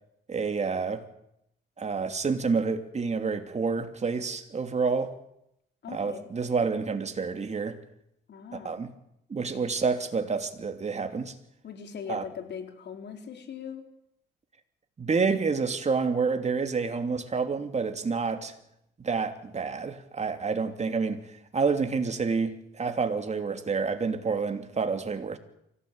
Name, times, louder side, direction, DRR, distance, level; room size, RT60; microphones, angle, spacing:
voice 1, 0.3-1.1 1.8-5.1 5.9-7.8 8.5-8.9 9.3-11.3 12.1-12.2 15.0-18.5 19.0-25.4, right 5 dB, 35° right, 2.9 m, -28 dB
voice 2, 5.8-6.3 8.3-8.7 11.6-13.8, left 7 dB, 60° left, 4.2 m, -40 dB
24.5 x 17.0 x 9.0 m
cardioid pair, 90°, 20 cm